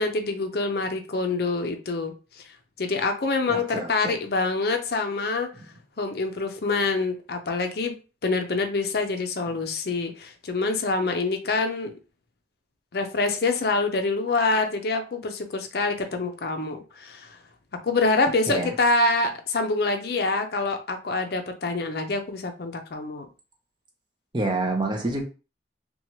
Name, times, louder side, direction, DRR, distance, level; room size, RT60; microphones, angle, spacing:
voice 1, 0.0-2.1 2.8-5.5 6.0-7.9 8.2-11.9 12.9-17.4 17.8-23.3, left 3 dB, 55° left, 5 dB, 0.5 m, -26 dB
voice 2, 3.5-4.2 18.5-18.7 24.3-25.2, right 2 dB, 25° right, 2 dB, 0.5 m, -27 dB
2.9 x 2.2 x 2.9 m, 0.33 s
head